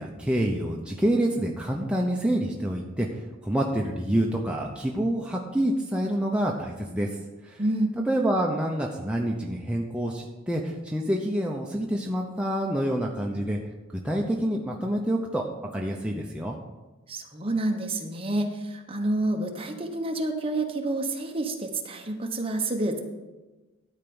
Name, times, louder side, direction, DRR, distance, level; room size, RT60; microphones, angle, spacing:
voice 1, 0.0-7.1 7.4-7.6 8.1-13.6 14.0-15.4 15.7-16.6, right 1 dB, 5° right, -1 dB, 0.7 m, -27 dB
voice 2, 7.6-7.9 17.1-23.0, right 2 dB, 30° right, 3 dB, 1.0 m, -28 dB
12.5 x 4.5 x 7.0 m, 1.2 s
head